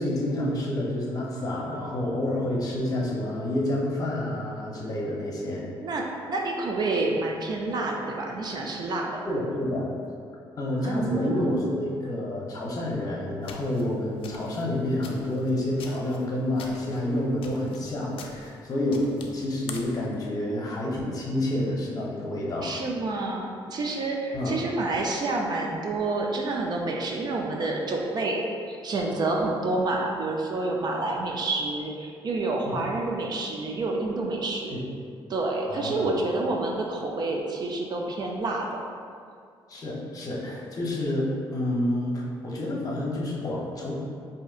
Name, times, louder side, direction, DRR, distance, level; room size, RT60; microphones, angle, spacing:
voice 1, 0.0-5.7 9.3-9.9 10.6-22.7 24.3-24.6 32.7-32.8 34.7-34.8 35.7-36.1 39.7-43.9, left 1 dB, 40° left, -3 dB, 0.8 m, -29 dB
voice 2, 5.8-9.2 10.8-11.6 22.6-34.8 35.3-38.8, right 2 dB, 45° right, 0 dB, 0.5 m, -28 dB
sound 1, 13.4-20.1, left 5 dB, 70° left, 0.4 m, -45 dB
5.0 x 2.7 x 2.4 m, 2.3 s
cardioid pair, 115°, 10 cm